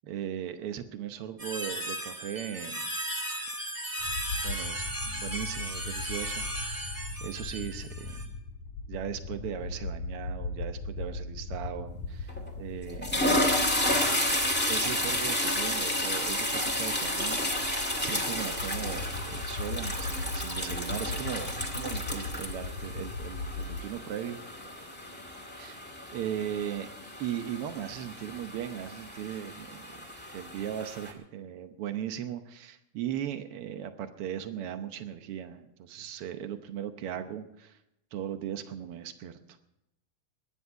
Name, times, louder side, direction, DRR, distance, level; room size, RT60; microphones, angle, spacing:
voice 1, 0.0-2.9 4.4-8.2 8.9-13.3 14.3-24.4 25.5-25.8 26.1-26.9 27.2-29.9 30.3-37.8 38.1-39.6, right 10 dB, 75° right, 9 dB, 1.3 m, -38 dB
sound 1, 1.4-8.3, right 1 dB, 10° right, 0.9 m, -36 dB
sound 2, 4.0-23.9, left 3 dB, 70° left, 2.6 m, -39 dB
sound 3, 12.3-12.5 12.9-31.1, left 1 dB, 5° left, 1.2 m, -32 dB
21.0 x 10.0 x 4.7 m, 0.85 s
omnidirectional pair, 3.6 m